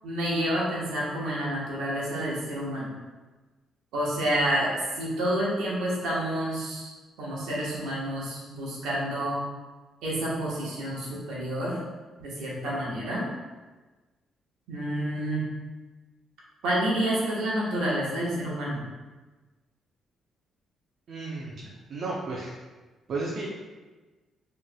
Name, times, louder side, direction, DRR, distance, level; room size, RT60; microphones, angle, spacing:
voice 1, 0.0-2.9 3.9-6.9 7.2-9.4 10.0-11.8 12.2-13.3 14.7-15.5 16.6-18.8, right 1 dB, 90° right, -5 dB, 1.2 m, -29 dB
voice 2, 21.1-22.6 23.1-23.5, right 3 dB, 60° right, -4 dB, 0.6 m, -33 dB
4.5 x 3.2 x 2.2 m, 1.3 s
cardioid pair, 90°, 0 cm